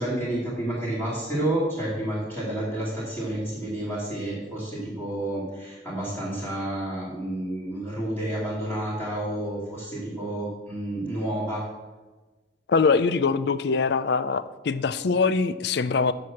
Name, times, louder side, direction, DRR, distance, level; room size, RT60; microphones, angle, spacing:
voice 1, 0.0-11.6, right 1 dB, 10° left, -9 dB, 2.6 m, -30 dB
voice 2, 12.7-16.1, left 4 dB, 55° left, 15 dB, 0.4 m, -23 dB
7.8 x 6.1 x 7.0 m, 1.2 s
head